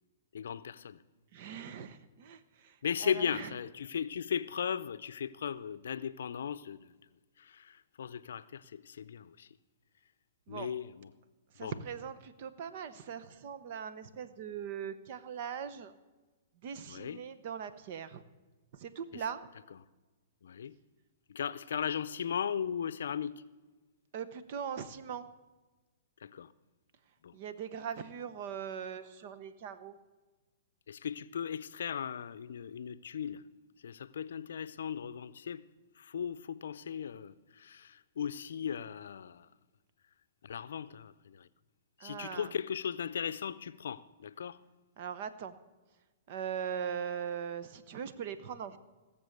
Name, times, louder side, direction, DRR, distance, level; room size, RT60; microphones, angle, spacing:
voice 1, 0.3-1.0 2.8-6.9 7.4-9.5 10.5-11.1 11.6-11.8 16.9-17.2 19.1-19.2 20.4-20.8 21.3-23.4 26.2-26.5 27.2-27.3 30.9-33.4 33.8-35.6 36.0-39.5 40.4-41.5 42.0-44.6, left 8 dB, 75° left, 0.5 m, -37 dB
voice 2, 1.3-2.7 3.0-3.5 10.5-10.7 11.6-15.9 16.6-18.2 18.7-19.4 24.1-25.3 27.3-30.0 42.0-42.5 45.0-45.5 46.3-48.8, right 8 dB, 50° right, 0.9 m, -40 dB
17.0 x 7.1 x 6.6 m
hypercardioid pair, 130°, 0 cm